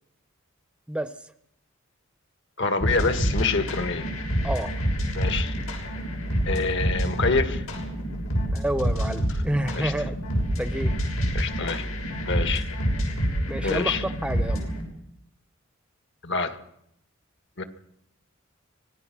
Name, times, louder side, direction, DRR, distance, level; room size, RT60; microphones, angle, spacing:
voice 1, 2.6-4.1 5.1-5.6 6.5-7.7 9.8-9.9 11.3-11.9 12.3-12.7 13.6-14.0 16.2-16.6 17.6-17.7, left 4 dB, 60° left, 9 dB, 1.8 m, -26 dB
sound 1, 2.8-14.8, equal, 90° left, 6.7 m, -27 dB
voice 2, 4.4-4.8 8.5-10.2 10.6-10.9 13.5-14.7, right 1 dB, 5° right, 11 dB, 0.7 m, -29 dB
25.0 x 18.5 x 6.1 m, 0.76 s
head